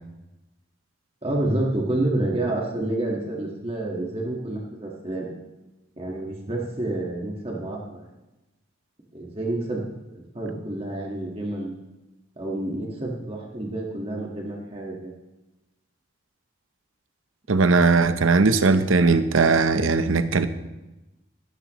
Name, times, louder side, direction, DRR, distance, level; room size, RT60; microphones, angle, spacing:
voice 1, 1.2-5.3 6.0-8.0 9.1-9.9 10.1-11.7 12.4-15.1, right 1 dB, 30° right, -2 dB, 1.6 m, -29 dB
voice 2, 17.5-20.5, right 4 dB, 85° right, 11 dB, 0.8 m, -19 dB
17.0 x 12.5 x 3.1 m, 1.0 s
head